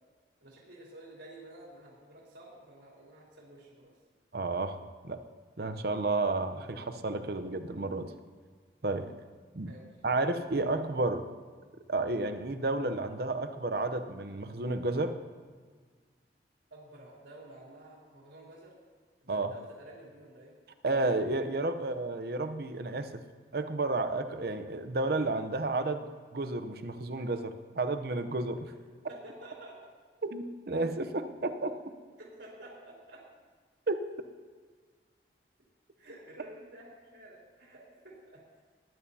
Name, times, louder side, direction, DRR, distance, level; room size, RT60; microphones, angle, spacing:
voice 1, 0.4-3.9 9.7-9.9 16.7-18.7 19.2-20.5 21.8-21.9 29.1-29.9 32.2-33.2 36.0-38.6, right 1 dB, 85° right, -5 dB, 3.4 m, -51 dB
voice 2, 4.3-4.8 5.0-5.2 5.6-8.1 8.8-9.1 9.5-9.7 10.0-11.3 11.9-15.2 19.3-19.5 20.8-23.2 23.5-26.0 26.3-28.7 30.2-31.8 33.9-34.0, right 2 dB, 55° right, 9 dB, 0.7 m, -31 dB
19.5 x 10.5 x 2.8 m, 1.5 s
head